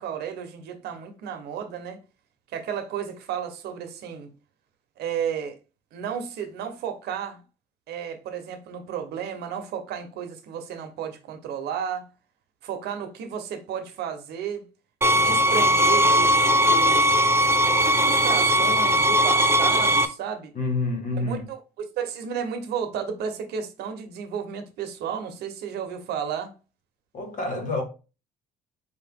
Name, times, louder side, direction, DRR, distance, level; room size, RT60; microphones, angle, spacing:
voice 1, 0.0-2.0 2.5-4.3 5.0-5.5 5.9-7.4 7.9-12.1 12.6-14.7 15.1-17.2 17.8-20.5 21.1-26.5, right 7 dB, 75° right, 1.0 m, -33 dB
sound 1, 15.0-20.1, equal, 15° right, 0.5 m, -19 dB
voice 2, 20.5-21.5 27.1-27.8, left 2 dB, 50° left, 1.5 m, -28 dB
4.5 x 2.8 x 3.6 m
cardioid pair, 110°, 17 cm